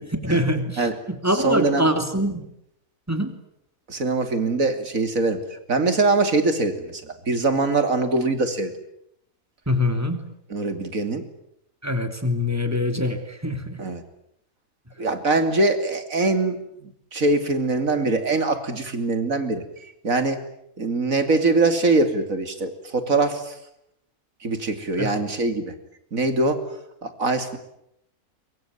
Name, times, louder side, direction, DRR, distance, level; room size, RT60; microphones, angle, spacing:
voice 1, 0.1-2.4 3.1-3.4 9.7-10.2 11.8-13.8 25.0-25.1, left 1 dB, 10° right, 7 dB, 2.9 m, -24 dB
voice 2, 1.4-1.9 3.9-8.7 10.5-11.2 13.8-14.0 15.0-20.4 20.8-23.6 24.4-25.7 26.1-26.6 27.0-27.6, right 3 dB, 70° right, 9 dB, 3.1 m, -23 dB
23.0 x 23.0 x 9.4 m, 0.77 s
omnidirectional pair, 1.5 m